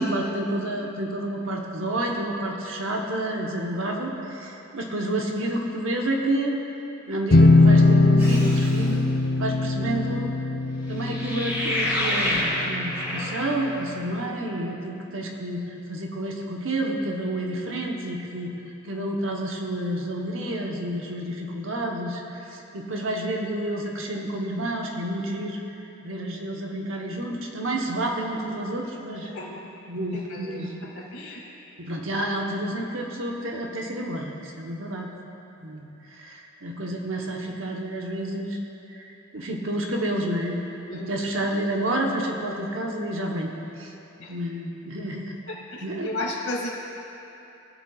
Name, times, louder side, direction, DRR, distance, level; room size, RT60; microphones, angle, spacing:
voice 1, 0.0-6.6 7.1-9.0 9.4-10.3 10.9-18.5 18.8-25.6 26.0-29.3 29.9-30.8 31.8-35.1 35.6-38.6 38.9-40.6 40.9-43.5 43.8-43.9 44.3-45.3 45.8-46.1, right 1 dB, 60° right, 0 dB, 1.1 m, -29 dB
sound 1, 7.3-12.9, left 2 dB, 40° left, 0.6 m, -20 dB
sound 2, 8.2-8.9 11.0-13.9, left 1 dB, 10° right, 1.8 m, -28 dB
voice 2, 29.2-29.6 30.1-30.7 30.9-31.4 40.8-41.3 44.2-44.3 46.0-46.7, left 2 dB, 80° left, -3 dB, 2.2 m, -34 dB
19.5 x 7.1 x 2.4 m, 2.9 s
head